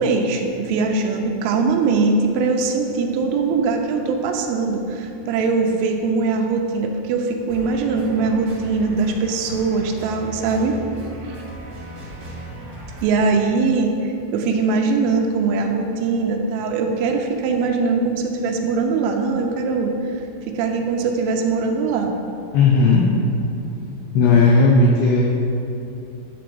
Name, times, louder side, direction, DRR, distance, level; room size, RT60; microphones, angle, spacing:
voice 1, 0.0-10.8 13.0-20.2 20.5-22.2, right 4 dB, 85° right, 3 dB, 3.3 m, -21 dB
sound 1, 7.5-13.0, right 1 dB, 45° right, 2.1 m, -37 dB
voice 2, 22.5-23.1 24.1-25.2, left 3 dB, 85° left, -2 dB, 2.3 m, -14 dB
11.5 x 3.9 x 7.7 m, 2.7 s
omnidirectional pair, 5.8 m